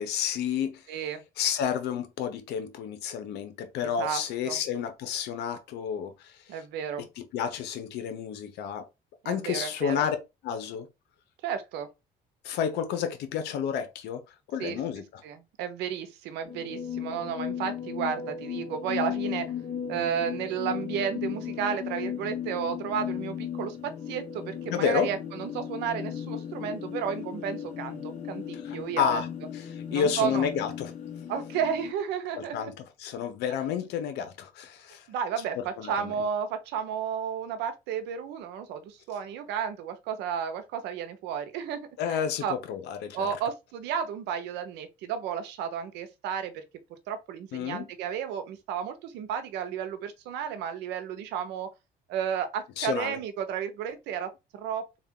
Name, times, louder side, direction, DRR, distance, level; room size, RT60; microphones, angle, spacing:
voice 1, 0.0-0.8 1.4-6.3 7.0-8.8 9.2-10.2 10.4-10.9 12.4-14.2 14.5-15.2 24.7-25.1 28.6-29.3 29.5-30.9 32.4-35.1 35.6-36.1 42.0-43.3 47.5-47.9 52.8-53.2, left 8 dB, 80° left, 0.7 m, -30 dB
voice 2, 0.9-1.2 3.8-4.6 6.5-7.1 9.2-10.0 11.4-11.9 14.6-14.8 15.2-19.5 19.9-29.2 29.9-30.5 31.3-32.7 35.1-42.5 43.1-46.6 47.1-51.7 52.1-55.0, right 8 dB, 90° right, 0.7 m, -33 dB
sound 1, 16.4-31.9, left 8 dB, 45° left, 0.7 m, -36 dB
3.5 x 2.4 x 3.6 m
cardioid pair, 110°, 17 cm